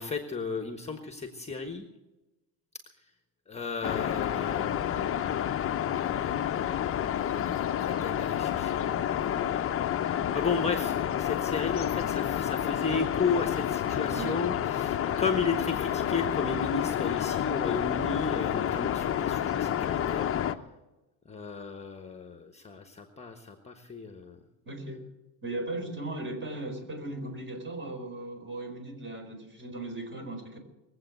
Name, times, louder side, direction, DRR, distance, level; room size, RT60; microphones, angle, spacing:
voice 1, 0.0-1.9 3.0-3.1 3.5-5.4 7.2-7.4 7.7-9.0 9.2-9.6 10.0-20.3 21.2-24.4, left 4 dB, 15° left, 6 dB, 1.3 m, -34 dB
sound 1, 3.8-20.6, left 10 dB, 35° left, 0.8 m, -29 dB
voice 2, 24.6-25.0 25.4-30.6, right 2 dB, 30° right, 4 dB, 4.5 m, -37 dB
21.5 x 8.1 x 8.0 m, 1.1 s
cardioid pair, 125°, 41 cm